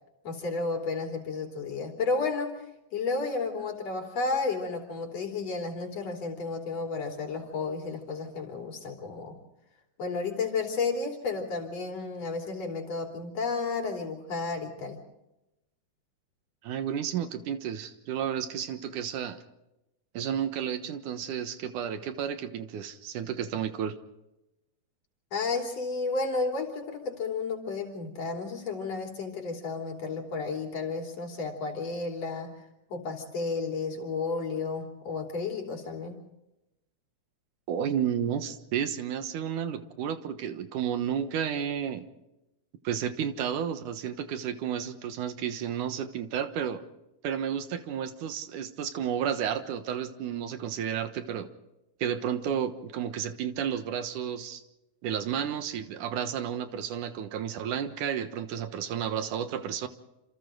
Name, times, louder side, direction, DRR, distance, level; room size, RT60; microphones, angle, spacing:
voice 1, 0.2-2.6 2.9-9.4 10.0-15.0 25.3-32.5 32.9-36.2, left 4 dB, 55° left, 2 dB, 4.4 m, -32 dB
voice 2, 16.6-19.4 20.1-23.9 37.7-42.1 42.8-46.8 47.2-51.5 52.0-54.6 55.0-59.9, right 8 dB, 85° right, 9 dB, 2.8 m, -32 dB
28.0 x 27.5 x 3.9 m, 0.93 s
omnidirectional pair, 3.5 m